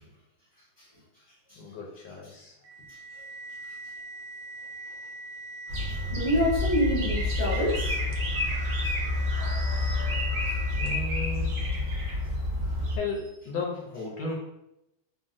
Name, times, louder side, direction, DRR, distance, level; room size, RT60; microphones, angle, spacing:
voice 1, 1.6-2.5 10.7-11.6 12.9-14.3, left 3 dB, 75° left, -2 dB, 1.1 m, -34 dB
sound 1, 2.6-11.2, right 2 dB, 90° right, 1.4 m, -42 dB
sound 2, 5.7-13.0, left 2 dB, 65° right, 1.4 m, -28 dB
voice 2, 6.1-8.0 9.3-9.4, equal, 35° right, -11 dB, 0.8 m, -27 dB
3.8 x 2.0 x 2.4 m, 0.84 s
omnidirectional pair, 2.2 m